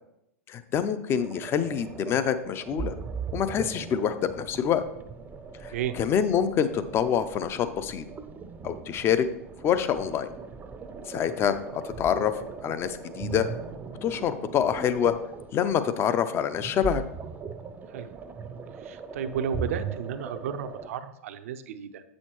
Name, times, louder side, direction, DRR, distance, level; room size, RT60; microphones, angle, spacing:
voice 1, 0.5-3.0 3.3-4.8 5.6-8.1 8.6-9.3 9.6-10.3 11.1-12.3 12.6-13.5 14.0-15.1 15.5-17.0, left 8 dB, 30° left, 11 dB, 0.5 m, -26 dB
sound 1, 1.2-20.9, right 5 dB, 20° right, 0.5 m, -39 dB
voice 2, 17.9-18.2 18.8-22.0, right 8 dB, 65° right, 10 dB, 0.6 m, -33 dB
8.0 x 6.3 x 3.0 m, 0.84 s
hypercardioid pair, 100°, 8 cm